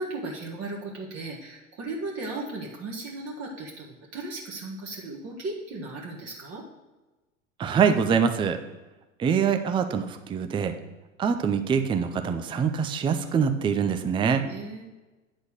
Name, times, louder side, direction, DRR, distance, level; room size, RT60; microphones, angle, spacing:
voice 1, 0.0-6.6 14.4-14.8, right 2 dB, 35° right, -3 dB, 1.6 m, -36 dB
voice 2, 7.6-8.6 9.2-10.8 11.2-14.4, right 6 dB, 15° right, 7 dB, 0.5 m, -24 dB
9.5 x 4.2 x 6.3 m, 1.1 s
figure-of-eight pair, 85°, 40 cm